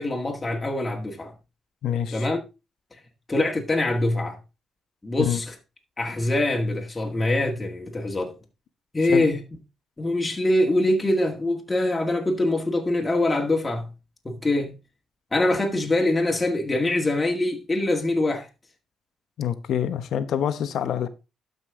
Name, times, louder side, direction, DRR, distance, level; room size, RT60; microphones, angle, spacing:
voice 1, 0.0-1.3 2.1-2.4 2.9-3.0 3.3-4.4 5.0-5.5 6.0-8.3 8.9-9.4 10.0-13.9 14.2-14.7 15.3-18.5, left 2 dB, 20° left, 2.0 m, -24 dB
voice 2, 1.8-2.3 5.2-5.4 9.1-9.3 19.4-21.1, left 9 dB, 70° left, 1.0 m, -26 dB
12.5 x 5.5 x 3.7 m
cardioid pair, 90°, 0 cm